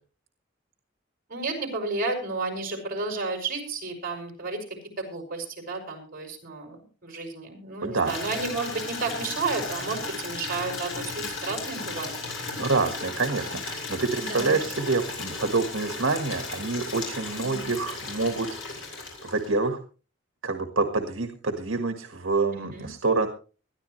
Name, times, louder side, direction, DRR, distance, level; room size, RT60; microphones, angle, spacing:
voice 1, 1.3-4.6 5.0-12.1 14.1-14.6 17.3-17.6 22.5-22.9, right 3 dB, 45° right, 4 dB, 5.8 m, -32 dB
voice 2, 7.8-8.2 12.6-18.5 19.2-19.8 20.4-23.3, right 3 dB, 80° right, 6 dB, 1.6 m, -27 dB
Water tap faucet / Liquid, 8.0-19.6, left 3 dB, 80° left, 7.0 m, -35 dB
20.5 x 13.5 x 3.1 m, 0.36 s
head